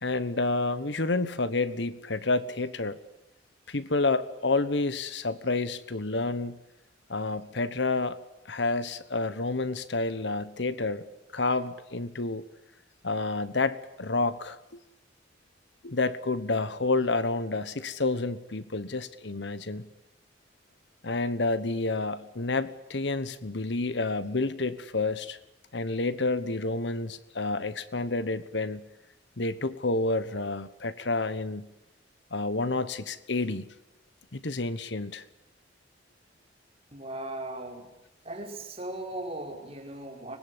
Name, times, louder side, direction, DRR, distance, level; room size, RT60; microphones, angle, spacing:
voice 1, 0.0-3.0 3.7-6.6 7.1-8.2 8.4-11.0 11.3-12.4 13.0-14.8 15.8-19.9 21.0-25.4 25.7-28.9 29.4-31.7 32.3-33.7 34.3-35.2, left 3 dB, 70° left, 14 dB, 1.2 m, -29 dB
voice 2, 36.9-37.9 38.2-40.4, right 1 dB, 30° right, 0 dB, 5.5 m, -38 dB
24.5 x 20.5 x 9.9 m, 0.90 s
head